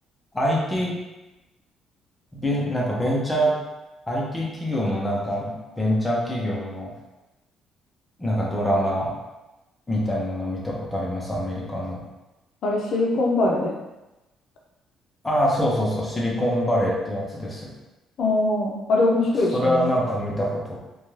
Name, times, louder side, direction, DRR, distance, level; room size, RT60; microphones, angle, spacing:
voice 1, 0.3-1.0 2.3-3.6 4.1-6.9 8.2-9.2 9.9-12.0 15.2-17.7 19.5-20.8, equal, 10° left, -3 dB, 0.6 m, -25 dB
voice 2, 12.6-13.7 18.2-19.9, left 2 dB, 55° left, -2 dB, 0.5 m, -22 dB
2.6 x 2.2 x 3.1 m, 1.0 s
cardioid pair, 145°, 0 cm